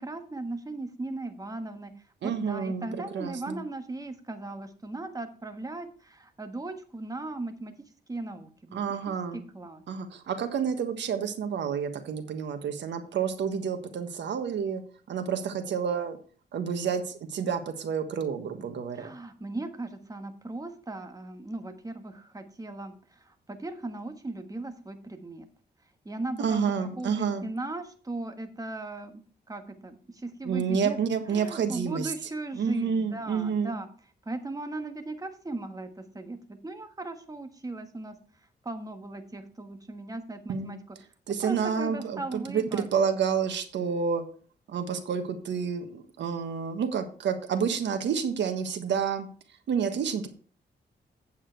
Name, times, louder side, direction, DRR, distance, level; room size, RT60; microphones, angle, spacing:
voice 1, 0.0-1.9 2.2-7.7 8.1-9.0 9.5-9.8 19.0-25.5 26.0-29.2 29.5-31.0 31.3-33.9 34.2-38.1 38.6-40.8 41.4-42.8, right 2 dB, 20° right, 7 dB, 1.5 m, -37 dB
voice 2, 2.2-3.6 8.7-9.4 9.9-14.8 15.1-16.2 16.5-19.1 26.4-27.5 30.4-32.1 32.5-33.8 40.5-40.8 41.3-44.2 44.7-49.3 49.7-50.3, right 6 dB, 85° right, 8 dB, 1.4 m, -29 dB
8.6 x 7.4 x 4.6 m, 0.41 s
cardioid pair, 90°, 18 cm